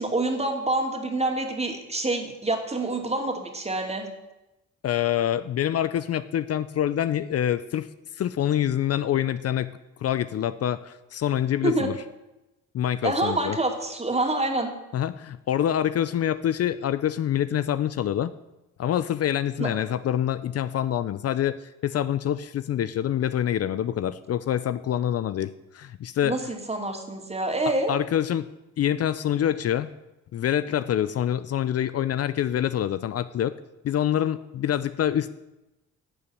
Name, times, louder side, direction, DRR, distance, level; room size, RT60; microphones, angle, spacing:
voice 1, 0.0-4.1 11.6-11.9 13.0-14.7 19.6-19.7 26.2-27.9, right 2 dB, 20° right, 4 dB, 2.5 m, -27 dB
voice 2, 4.8-7.9 8.2-12.0 12.7-13.6 14.9-18.3 18.8-26.4 27.9-28.5 28.8-29.9 30.3-33.6 33.8-35.3, left 10 dB, 55° left, 14 dB, 0.6 m, -26 dB
12.0 x 7.0 x 9.1 m, 0.98 s
cardioid pair, 90°, 30 cm